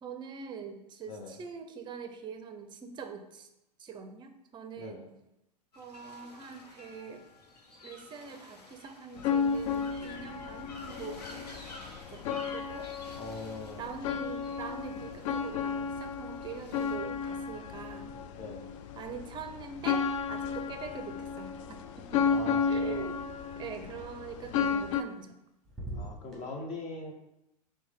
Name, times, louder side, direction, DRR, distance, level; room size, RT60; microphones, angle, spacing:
voice 1, 0.0-3.5 3.8-5.1 5.8-7.2 7.8-11.5 12.1-12.9 13.8-18.2 18.9-23.3 23.6-25.4, right 6 dB, 20° right, 7 dB, 0.5 m, -43 dB
voice 2, 1.1-1.4 4.8-5.1 13.2-13.9 18.3-18.7 22.3-23.1 25.9-27.1, left 2 dB, 35° left, 2 dB, 0.9 m, -41 dB
sound 1, 5.7-16.9, left 2 dB, 75° left, 1.0 m, -51 dB
sound 2, 9.2-25.0, left 6 dB, 50° left, 0.4 m, -33 dB
sound 3, 18.0-18.8 19.0-23.1 24.7-25.4 25.6-26.4, right 1 dB, ahead, 1.4 m, -48 dB
6.0 x 2.2 x 3.5 m, 0.89 s
hypercardioid pair, 100°, 21 cm